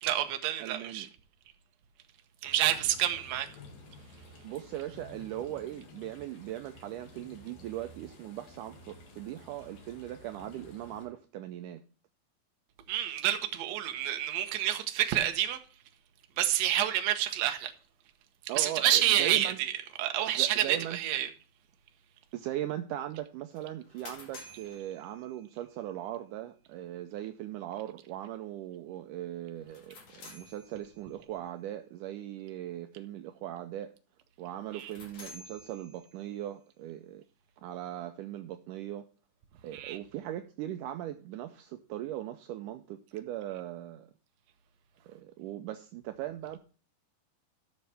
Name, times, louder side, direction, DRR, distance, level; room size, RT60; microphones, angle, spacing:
voice 1, 0.0-1.1 2.4-3.5 12.9-15.6 16.4-17.7 18.6-19.7 20.0-21.3 34.7-34.9 39.7-40.0, right 12 dB, 65° right, 1.8 m, -28 dB
voice 2, 0.6-1.1 4.4-11.8 18.5-19.6 20.4-21.0 22.3-33.9 34.4-37.2 37.6-39.1 39.6-44.1 45.1-46.6, right 13 dB, 85° right, 1.9 m, -39 dB
sound 1, 2.4-11.1, left 2 dB, 70° left, 3.7 m, -52 dB
sound 2, 23.5-25.8 29.6-31.2 34.6-36.4, left 2 dB, 50° left, 2.9 m, -52 dB
13.0 x 6.6 x 3.4 m
omnidirectional pair, 4.2 m